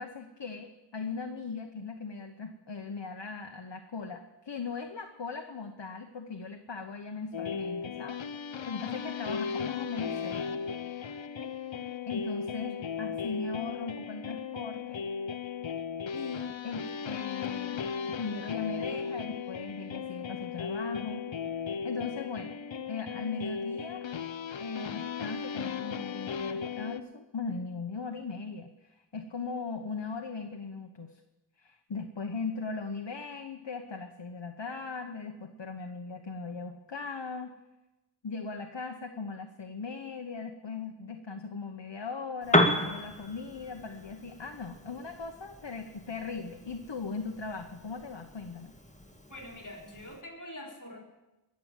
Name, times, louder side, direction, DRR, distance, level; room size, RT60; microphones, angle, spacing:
voice 1, 0.0-8.2 8.6-10.6 12.1-15.0 16.1-17.8 18.1-21.3 21.8-22.6 22.9-24.2 24.6-31.2 31.6-37.5 38.2-48.7, left 4 dB, 70° left, 5 dB, 1.1 m, -39 dB
sound 1, 7.3-27.0, left 6 dB, 90° left, 0.7 m, -36 dB
Piano, 42.4-50.2, left 1 dB, 15° left, 1.9 m, -33 dB
voice 2, 49.3-51.0, left 1 dB, 45° left, 0 dB, 3.9 m, -45 dB
21.5 x 7.6 x 7.4 m, 1.0 s
wide cardioid pair, 40°, 44 cm